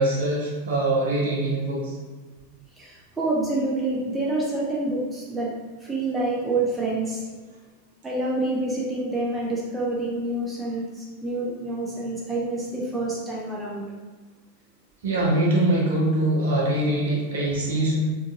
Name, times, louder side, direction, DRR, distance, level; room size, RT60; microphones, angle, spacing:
voice 1, 0.0-1.9 15.0-18.0, right 1 dB, 60° right, -4 dB, 0.9 m, -23 dB
voice 2, 2.8-5.6 5.8-7.2 8.0-13.9, right 2 dB, 15° right, -4 dB, 0.6 m, -27 dB
3.7 x 2.6 x 2.5 m, 1.3 s
figure-of-eight pair, 90°, 0 cm